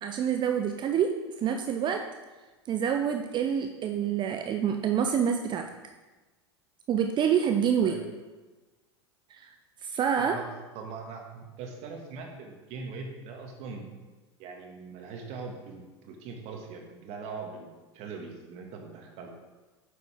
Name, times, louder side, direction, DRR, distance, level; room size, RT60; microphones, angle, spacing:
voice 1, 0.0-2.0 2.7-5.7 6.9-8.0 9.3-9.5 9.8-10.4, right 8 dB, 30° right, 5 dB, 0.6 m, -27 dB
voice 2, 10.2-10.5 10.8-13.9 14.4-19.3, right 4 dB, 50° right, 2 dB, 1.8 m, -41 dB
9.6 x 7.0 x 3.5 m, 1.2 s
hypercardioid pair, 85°, 14 cm